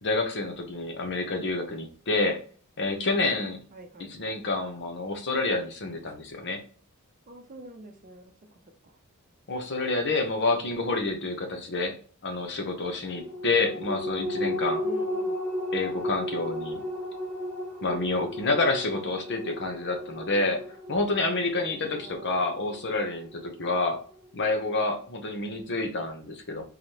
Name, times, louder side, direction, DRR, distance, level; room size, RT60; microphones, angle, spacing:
voice 1, 0.0-2.4 2.8-3.6 4.0-6.6 9.5-11.9 12.2-14.8 15.7-16.8 17.8-20.6 20.9-24.0 24.3-26.6, left 3 dB, 55° left, 5 dB, 0.8 m, -28 dB
voice 2, 3.7-4.4 7.3-8.9 14.8-15.4 21.5-22.4 25.4-25.7, right 1 dB, 40° right, 4 dB, 0.7 m, -47 dB
sound 1, 13.0-23.9 24.2-24.3, left 1 dB, 5° left, 0.8 m, -34 dB
3.9 x 3.2 x 2.9 m, 0.42 s
head